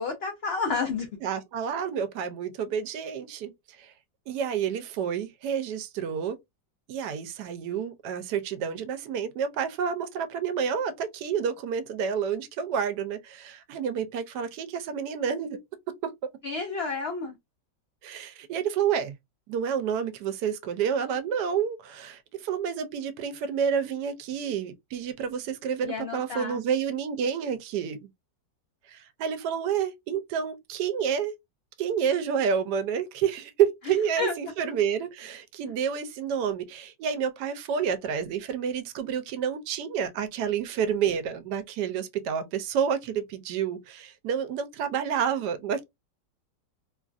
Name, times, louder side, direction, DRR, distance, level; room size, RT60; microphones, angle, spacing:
voice 1, 0.0-1.1 16.4-17.4 25.8-26.6 34.2-34.3, left 4 dB, 90° left, 0.5 m, -30 dB
voice 2, 1.2-3.5 3.8-3.9 4.3-6.4 6.9-15.6 16.0-16.1 18.0-19.1 19.5-28.1 28.9-31.3 31.8-45.8, right 7 dB, 75° right, 1.1 m, -29 dB
3.1 x 2.4 x 2.3 m
omnidirectional pair, 1.8 m